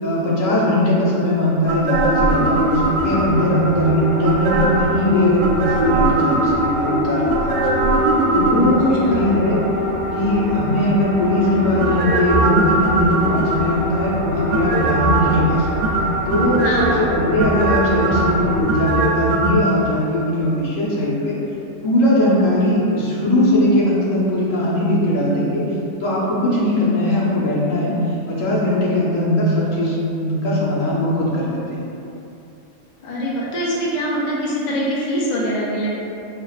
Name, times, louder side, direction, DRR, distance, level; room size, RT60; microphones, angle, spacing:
voice 1, 0.0-7.6 8.3-9.6 10.1-15.7 16.3-21.4 21.8-25.6 26.0-28.0 28.3-31.8, left 1 dB, 80° left, -7 dB, 1.3 m, -19 dB
sound 1, 1.7-3.5 4.2-4.9 5.4-6.8 7.3-9.0 11.8-13.9 14.5-15.4 15.8-17.0 17.4-19.7 20.0-20.1, right 3 dB, 75° right, 0.9 m, -20 dB
sound 2, 2.2-18.6, left 1 dB, 35° right, 0.6 m, -25 dB
voice 2, 16.6-17.0 27.3-27.4 33.0-36.0, equal, 45° left, -5 dB, 0.6 m, -23 dB
5.6 x 2.5 x 2.3 m, 2.8 s
omnidirectional pair, 1.3 m